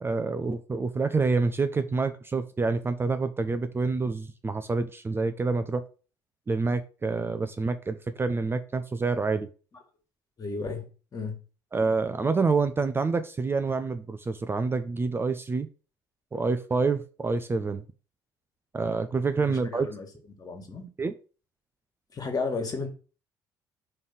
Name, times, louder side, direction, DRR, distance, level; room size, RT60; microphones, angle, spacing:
voice 1, 0.0-5.8 6.5-9.5 11.7-15.7 16.3-17.8 18.7-19.9 21.0-21.1, right 4 dB, 20° right, 0.6 m, -27 dB
voice 2, 10.4-10.8 11.1-11.4 19.5-20.1 20.4-20.9 22.1-22.9, left 4 dB, 35° left, 1.9 m, -33 dB
5.4 x 3.3 x 5.6 m
figure-of-eight pair, 55°, 11 cm